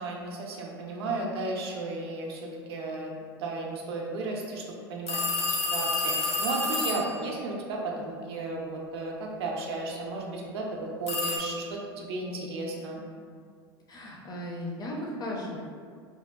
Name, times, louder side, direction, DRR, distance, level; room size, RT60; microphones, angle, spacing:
voice 1, 0.0-13.0, right 2 dB, 70° right, -1 dB, 0.4 m, -34 dB
sound 1, 5.1-7.2 11.1-11.4, left 3 dB, 85° left, 0.4 m, -29 dB
voice 2, 13.9-15.6, left 1 dB, 30° left, -2 dB, 0.5 m, -36 dB
2.7 x 2.1 x 2.3 m, 2.1 s
hypercardioid pair, 80°, 14 cm